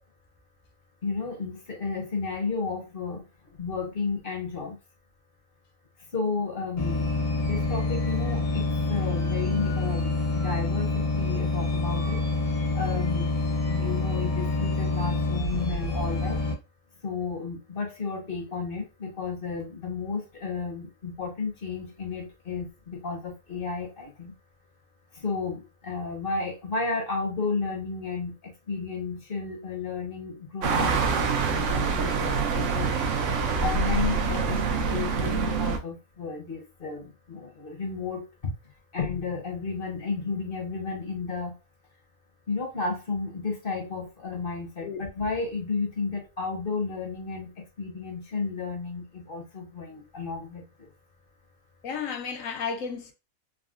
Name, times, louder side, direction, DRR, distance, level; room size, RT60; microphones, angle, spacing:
voice 1, 1.0-4.8 6.1-7.1 7.4-12.2 12.7-13.3 13.7-16.4 17.0-24.3 25.1-31.2 31.5-32.9 33.6-38.6 38.9-41.6 42.5-50.9, left 4 dB, 45° left, 0.9 m, -32 dB
sound 1, 6.8-16.5, left 2 dB, 85° left, 1.5 m, -27 dB
sound 2, 30.6-35.8, right 5 dB, 70° right, 0.9 m, -25 dB
voice 2, 51.8-53.1, left 6 dB, 70° left, 1.0 m, -33 dB
3.6 x 2.0 x 2.4 m
omnidirectional pair, 1.5 m